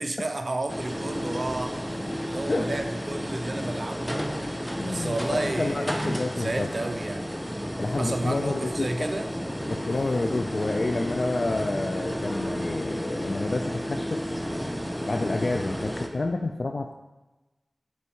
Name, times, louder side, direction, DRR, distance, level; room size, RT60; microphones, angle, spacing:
voice 1, 0.0-4.4 4.8-7.3 8.0-9.3, right 2 dB, 45° right, 7 dB, 0.6 m, -32 dB
sound 1, 0.7-16.1, equal, 5° left, 0.7 m, -32 dB
voice 2, 4.8-6.7 7.8-8.9 9.7-14.2 15.1-16.9, left 2 dB, 55° left, 5 dB, 0.4 m, -29 dB
8.2 x 4.2 x 4.4 m, 1.1 s
wide cardioid pair, 65°, 0 cm